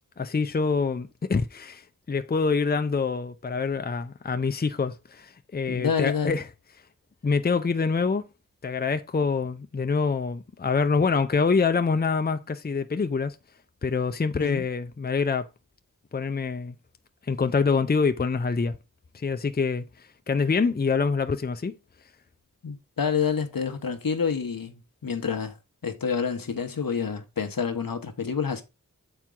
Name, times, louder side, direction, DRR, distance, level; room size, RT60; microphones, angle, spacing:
voice 1, 0.2-6.4 7.2-8.3 8.6-13.4 13.8-15.5 16.1-16.8 17.3-18.8 19.1-19.9 20.3-21.7, left 4 dB, 30° left, 0.5 m, -25 dB
voice 2, 5.7-6.4 14.4-14.6 22.6-25.5 25.8-28.6, left 6 dB, 80° left, 1.0 m, -28 dB
7.2 x 4.5 x 3.7 m
wide cardioid pair, 55°, 34 cm